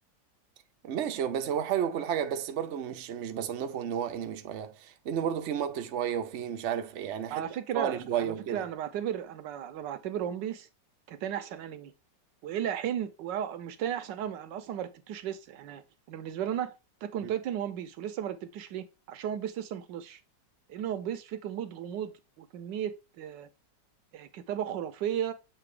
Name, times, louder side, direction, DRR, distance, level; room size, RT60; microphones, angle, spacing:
voice 1, 0.8-7.5 7.7-8.6 17.2-17.3, right 9 dB, 60° right, 0.8 m, -32 dB
voice 2, 7.3-10.7 11.1-11.9 12.4-16.7 17.0-20.2 20.7-23.5 24.1-25.3, right 10 dB, 75° right, 1.3 m, -35 dB
7.6 x 2.7 x 4.9 m
omnidirectional pair, 2.0 m